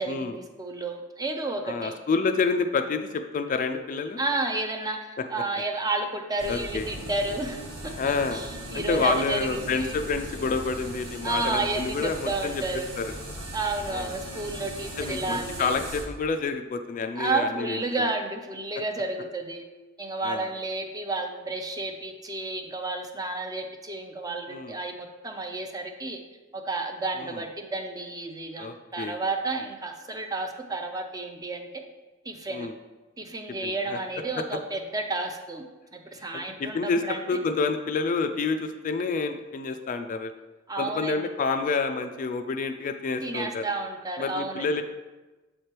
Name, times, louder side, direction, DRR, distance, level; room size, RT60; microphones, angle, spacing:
voice 1, 0.0-1.9 4.2-9.9 11.2-12.9 13.5-15.8 17.2-19.6 20.0-26.2 26.5-31.7 32.2-32.7 33.2-35.6 35.9-37.4 40.7-41.3 43.2-44.7, right 2 dB, 20° right, 4 dB, 0.5 m, -31 dB
voice 2, 1.6-4.2 6.5-6.8 8.0-8.5 8.7-12.5 13.0-13.1 13.9-14.1 15.0-17.8 20.2-20.5 24.5-24.7 27.2-27.4 28.6-29.2 32.5-32.7 33.6-34.0 36.3-40.3 40.8-43.6 44.2-44.8, left 4 dB, 40° left, 7 dB, 0.3 m, -28 dB
sound 1, 6.4-16.0, right 1 dB, 75° right, 1.3 m, -39 dB
7.3 x 3.3 x 4.4 m, 1.2 s
head